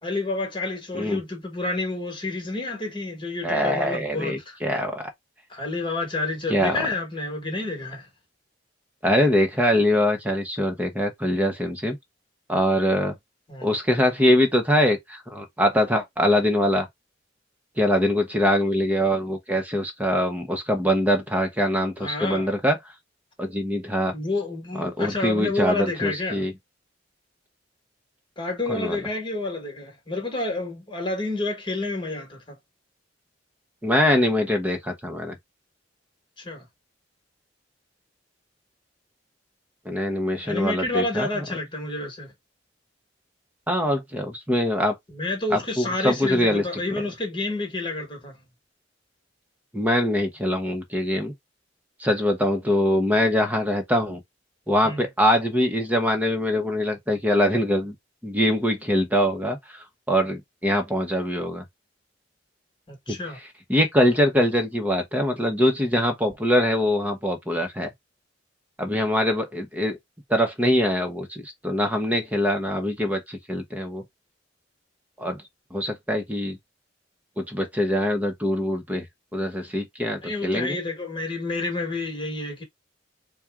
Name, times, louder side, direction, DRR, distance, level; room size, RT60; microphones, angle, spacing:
voice 1, 0.0-4.6 5.5-8.1 13.5-13.7 22.0-22.5 24.1-26.4 28.4-32.5 36.4-36.6 40.4-42.3 45.1-48.4 54.8-55.0 62.9-63.4 80.2-82.6, left 2 dB, 25° left, 1.6 m, -29 dB
voice 2, 3.4-5.1 6.5-6.9 9.0-12.0 12.5-13.1 13.6-16.9 17.8-22.8 23.4-24.1 24.8-26.5 28.7-29.0 33.8-35.4 39.8-41.4 43.7-44.9 45.5-46.6 46.9-47.0 49.7-51.3 52.0-54.2 54.7-57.9 58.2-61.6 63.1-63.2 63.7-67.9 68.8-70.0 70.3-74.0 75.2-75.4 75.7-76.6 77.4-79.0 79.3-80.8, equal, 10° right, 1.0 m, -23 dB
4.4 x 2.4 x 3.5 m
head